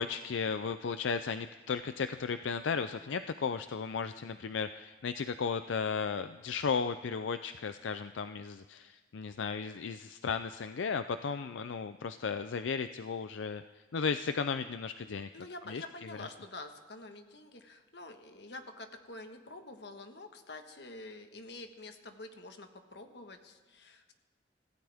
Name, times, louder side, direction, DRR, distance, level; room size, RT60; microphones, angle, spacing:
voice 1, 0.0-15.3 15.7-15.8, left 5 dB, 85° left, 11 dB, 0.5 m, -35 dB
voice 2, 15.3-24.1, left 2 dB, 65° left, 6 dB, 1.5 m, -47 dB
25.5 x 15.5 x 3.5 m, 1.3 s
head